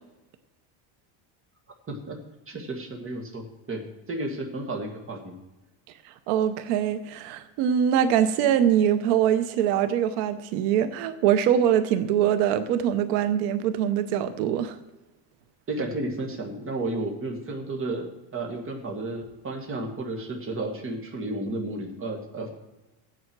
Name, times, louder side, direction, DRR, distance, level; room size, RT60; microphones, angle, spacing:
voice 1, 1.9-2.2 2.5-5.4 15.7-22.5, right 2 dB, 25° right, 2 dB, 2.0 m, -32 dB
voice 2, 6.3-14.8, right 9 dB, 85° right, 11 dB, 0.9 m, -23 dB
15.0 x 9.4 x 4.6 m, 1.1 s
cardioid pair, 150°, 47 cm